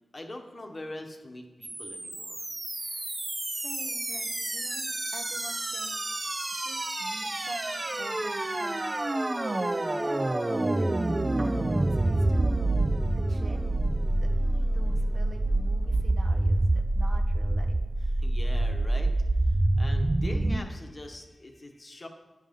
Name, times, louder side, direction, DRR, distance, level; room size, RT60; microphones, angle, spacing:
voice 1, 0.1-2.5 6.4-6.6 18.0-19.1 19.4-22.1, left 1 dB, 35° left, 3 dB, 1.0 m, -43 dB
sound 1, 1.6-20.6, right 2 dB, 30° right, 0.4 m, -27 dB
voice 2, 2.7-3.2 3.5-6.1 6.5-9.0 9.5-10.4 10.8-10.9 11.4-12.6 13.2-13.7 14.2-17.8, right 2 dB, 55° right, 2 dB, 1.0 m, -46 dB
10.0 x 3.6 x 5.3 m, 1.2 s
cardioid pair, 55°, 0 cm